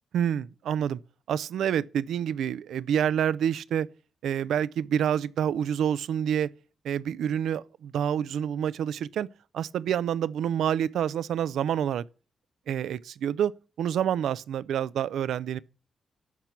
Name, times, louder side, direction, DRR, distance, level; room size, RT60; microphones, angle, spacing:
voice 1, 0.1-1.0 1.3-3.9 4.2-6.5 6.8-9.3 9.5-12.0 12.7-13.5 13.8-15.6, right 9 dB, 85° right, 0.4 m, -27 dB
12.0 x 4.4 x 8.1 m
supercardioid pair, 50°, 0 cm